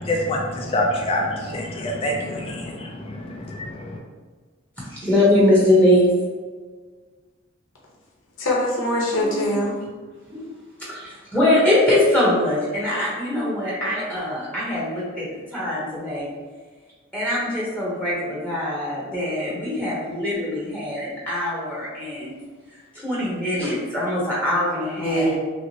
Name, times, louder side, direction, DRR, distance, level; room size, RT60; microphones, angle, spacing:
voice 1, 0.0-4.0, left 1 dB, 30° left, 0 dB, 0.4 m, -26 dB
voice 2, 4.8-6.1 9.2-9.6 10.3-10.4 10.9-15.3 15.5-16.3 17.1-22.3 22.9-25.4, left 1 dB, 5° left, -7 dB, 1.0 m, -22 dB
voice 3, 8.4-9.7 25.0-25.4, equal, 80° left, -4 dB, 0.9 m, -23 dB
6.0 x 2.1 x 2.8 m, 1.4 s
head